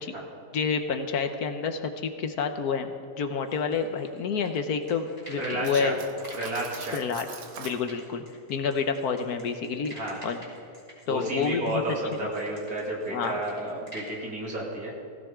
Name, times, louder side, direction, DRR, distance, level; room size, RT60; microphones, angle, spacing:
voice 1, 0.5-6.0 6.9-7.3 7.6-8.2 8.5-9.9 10.2-10.4 11.1-11.8 13.1-13.4, left 5 dB, 70° left, 7 dB, 1.4 m, -29 dB
sound 1, 3.5-5.7 6.2-14.1, equal, 20° left, 4.5 m, -48 dB
voice 2, 5.4-6.0 6.3-7.0 9.9-10.3 11.1-14.9, right 1 dB, 60° right, -3 dB, 3.2 m, -31 dB
Cutlery silverware, 5.6-7.8, right 6 dB, 80° right, 1.6 m, -42 dB
19.0 x 16.0 x 3.7 m, 2.3 s
omnidirectional pair, 1.7 m